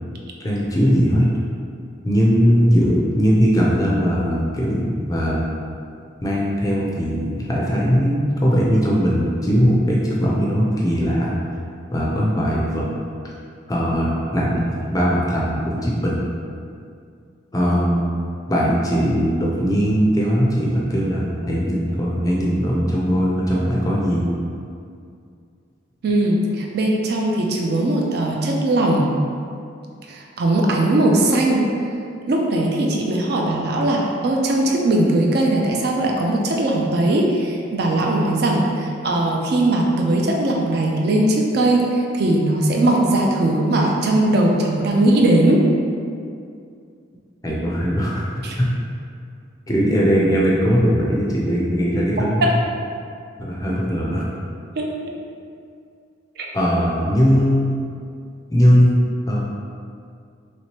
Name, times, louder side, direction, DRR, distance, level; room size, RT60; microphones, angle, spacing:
voice 1, 0.4-1.3 2.0-5.5 6.2-11.3 11.9-12.8 13.7-16.2 17.5-18.0 18.5-24.4 47.4-48.3 48.6-48.7 49.7-52.5 53.4-54.3 56.5-57.7 58.5-59.4, equal, 15° left, -4 dB, 0.4 m, -19 dB
voice 2, 26.0-29.1 30.1-31.7 32.3-45.6 48.4-48.6 52.4-52.5 54.8-54.9 56.4-56.5, right 1 dB, 50° right, -1 dB, 0.4 m, -19 dB
3.1 x 2.9 x 2.9 m, 2.4 s
head